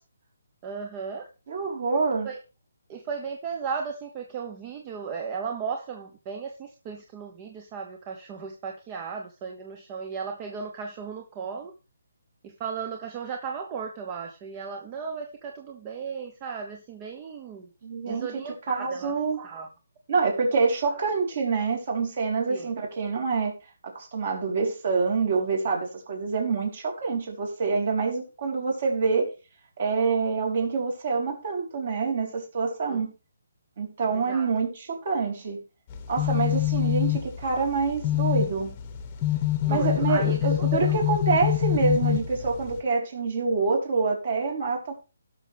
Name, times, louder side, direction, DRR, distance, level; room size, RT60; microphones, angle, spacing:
voice 1, 0.6-1.3 2.2-2.4 2.9-11.7 12.4-17.7 18.1-19.7 20.8-21.0 22.5-22.7 32.9-33.0 34.1-34.5 39.6-41.0, right 6 dB, 20° right, 4 dB, 0.9 m, -36 dB
voice 2, 1.5-2.3 17.8-18.3 18.7-19.4 20.1-23.5 23.8-29.3 29.8-33.1 33.8-35.6 36.1-38.7 39.7-44.9, right 4 dB, 40° right, 1 dB, 4.0 m, -26 dB
sound 1, 35.9-42.8, left 15 dB, 20° left, 1.1 m, -26 dB
17.0 x 6.4 x 3.5 m, 0.31 s
hypercardioid pair, 170°, 0 cm